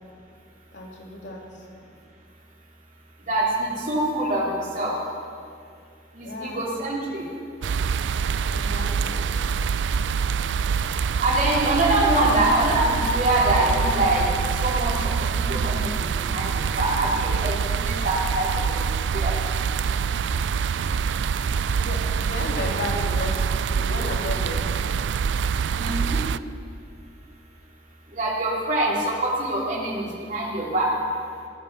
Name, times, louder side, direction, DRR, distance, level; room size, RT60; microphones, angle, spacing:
voice 1, 0.7-1.6 6.2-6.6 8.5-9.2 21.5-23.4 23.7-24.7, left 1 dB, 90° left, -2 dB, 2.9 m, -34 dB
voice 2, 3.3-4.9 6.1-7.2 11.2-19.3 25.8-26.2 28.1-30.9, right 1 dB, 45° right, -4 dB, 3.3 m, -24 dB
sound 1, 7.6-26.4, right 6 dB, 80° right, 0.4 m, -25 dB
22.0 x 9.2 x 6.2 m, 2.3 s
head